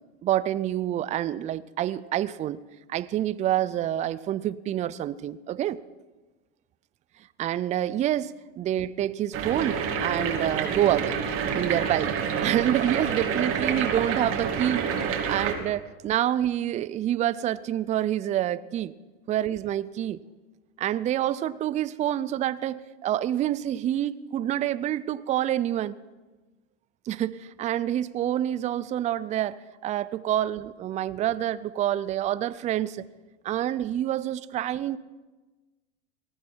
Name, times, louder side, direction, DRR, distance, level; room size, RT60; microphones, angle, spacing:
voice 1, 0.0-2.6 2.9-5.8 7.4-11.2 11.5-12.1 12.4-14.9 15.3-18.9 19.3-20.2 20.8-26.0 27.1-33.1 33.4-35.0, right 12 dB, 20° right, 16 dB, 0.4 m, -27 dB
sound 1, 9.3-15.5, right 6 dB, 40° right, 2.6 m, -28 dB
19.5 x 14.5 x 4.5 m, 1.2 s
hypercardioid pair, 110°, 33 cm